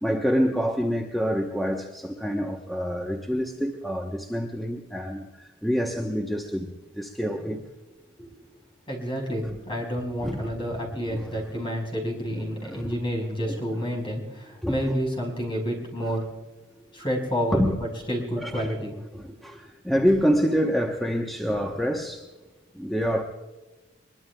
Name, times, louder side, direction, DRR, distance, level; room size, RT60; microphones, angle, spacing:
voice 1, 0.0-6.7 7.0-7.6 10.2-10.8 11.1-11.3 12.6-13.0 13.5-13.6 14.6-14.8 17.5-17.7 18.4-18.7 19.2-22.3 22.7-23.2, equal, ahead, 1 dB, 0.9 m, -27 dB
voice 2, 8.9-16.2 16.9-17.6 18.1-19.6, equal, 25° left, 0 dB, 4.7 m, -29 dB
22.5 x 22.0 x 2.3 m, 1.1 s
head